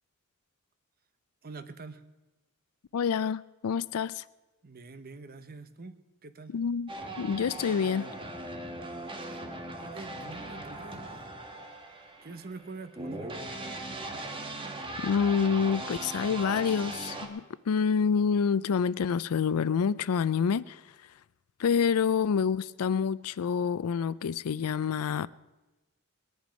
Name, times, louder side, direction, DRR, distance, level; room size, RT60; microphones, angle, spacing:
voice 1, 1.4-2.0 4.6-6.0 6.2-6.5 8.8-9.5 9.8-11.3 12.2-13.8, right 3 dB, 45° right, 0.9 m, -45 dB
voice 2, 2.9-4.2 6.5-6.9 7.2-8.1 15.0-20.8 21.6-25.3, left 6 dB, 80° left, 0.4 m, -27 dB
sound 1, 6.9-17.3, right 2 dB, 25° right, 1.4 m, -39 dB
20.0 x 10.5 x 5.2 m
head